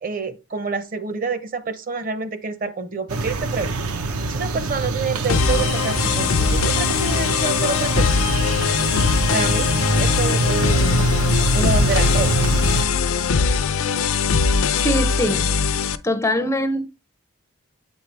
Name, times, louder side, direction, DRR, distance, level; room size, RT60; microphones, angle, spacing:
voice 1, 0.0-3.8 4.3-8.2 9.3-11.0 11.5-12.4, right 4 dB, 40° right, 0.7 m, -27 dB
sound 1, 3.1-12.9, right 2 dB, 85° right, 0.8 m, -24 dB
sound 2, 5.3-16.0, left 5 dB, 70° left, 0.5 m, -21 dB
voice 2, 14.8-15.5 16.0-16.9, left 1 dB, 15° left, 0.4 m, -22 dB
8.2 x 4.5 x 3.3 m
head